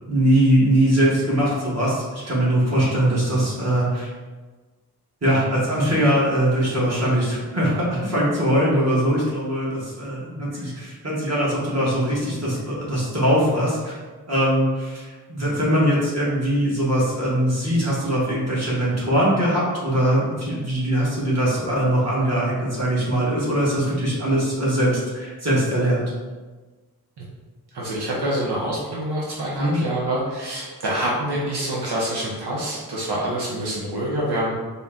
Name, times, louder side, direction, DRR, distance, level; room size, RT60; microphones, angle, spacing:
voice 1, 0.1-4.1 5.2-14.0 14.3-26.1 29.5-29.8, right 1 dB, 40° right, -6 dB, 1.4 m, -21 dB
voice 2, 27.7-34.5, right 1 dB, 80° right, -5 dB, 0.8 m, -26 dB
4.1 x 2.2 x 3.7 m, 1.3 s
wide cardioid pair, 75°, 39 cm